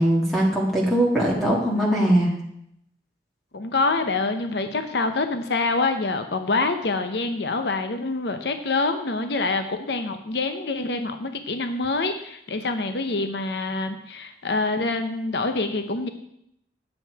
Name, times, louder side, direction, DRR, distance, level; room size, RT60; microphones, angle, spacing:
voice 1, 0.0-2.3, right 1 dB, ahead, -4 dB, 1.9 m, -20 dB
voice 2, 3.5-16.1, left 3 dB, 70° left, 8 dB, 0.8 m, -26 dB
10.0 x 8.6 x 4.8 m, 0.74 s
head